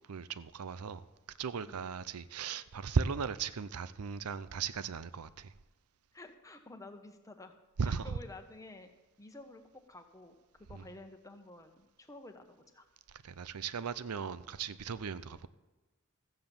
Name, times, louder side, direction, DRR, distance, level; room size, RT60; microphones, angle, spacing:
voice 1, 0.1-1.1 1.4-5.5 7.8-8.1 10.7-10.8 13.2-15.5, right 5 dB, 90° right, 0.6 m, -36 dB
voice 2, 6.1-7.5 7.8-8.9 9.2-10.4 10.7-12.9, left 2 dB, 15° left, 1.0 m, -51 dB
14.0 x 7.9 x 7.0 m
head